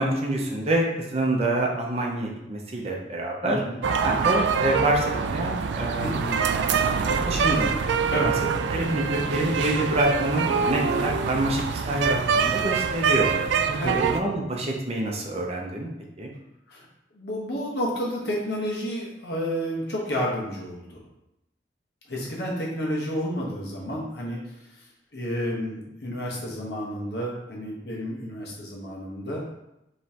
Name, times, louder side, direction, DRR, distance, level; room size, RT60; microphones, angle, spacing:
voice 1, 0.0-3.6 4.0-6.4 6.9-7.7 8.2-8.3 8.7-13.3 13.7-15.9 16.2-16.3, right 1 dB, 35° right, -1 dB, 0.6 m, -27 dB
voice 2, 3.4-3.8 6.0-6.1 8.1-8.3 13.8-14.0 16.7-16.9 17.1-21.0 22.1-24.4 25.1-29.4, equal, 65° left, -4 dB, 1.2 m, -30 dB
sound 1, 3.8-14.2, right 5 dB, 80° right, 0.3 m, -25 dB
5.1 x 3.1 x 2.9 m, 0.89 s
head